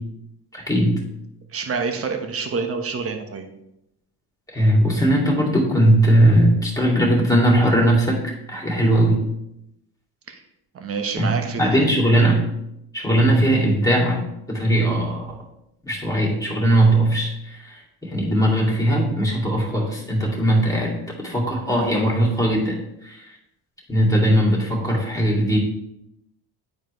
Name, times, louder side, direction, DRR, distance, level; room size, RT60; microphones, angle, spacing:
voice 1, 0.5-1.0 4.5-9.2 11.2-12.5 12.9-15.3 15.9-23.3 23.9-25.6, right 1 dB, 10° left, -2 dB, 2.5 m, -19 dB
voice 2, 1.5-3.5 10.3-10.4 10.7-11.7, right 5 dB, 35° right, 5 dB, 1.1 m, -27 dB
10.5 x 4.4 x 3.1 m, 0.82 s
cardioid pair, 95°, 40 cm